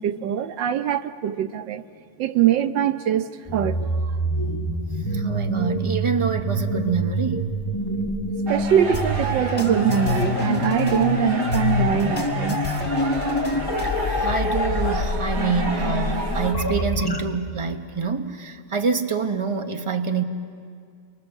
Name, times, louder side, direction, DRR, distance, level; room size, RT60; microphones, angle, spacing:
voice 1, 0.0-1.8 2.2-4.1 8.5-12.6, right 10 dB, 85° right, 10 dB, 1.6 m, -23 dB
sound 1, 3.5-17.2, left 1 dB, 15° left, 0.9 m, -26 dB
voice 2, 5.1-7.5 14.2-20.2, right 5 dB, 25° right, 6 dB, 0.8 m, -26 dB
sound 2, 8.5-16.5, right 1 dB, 65° right, 2.9 m, -30 dB
sound 3, 8.9-11.0 11.5-14.0, left 3 dB, 35° left, 4.7 m, -35 dB
29.0 x 24.5 x 7.2 m, 2.2 s
omnidirectional pair, 1.9 m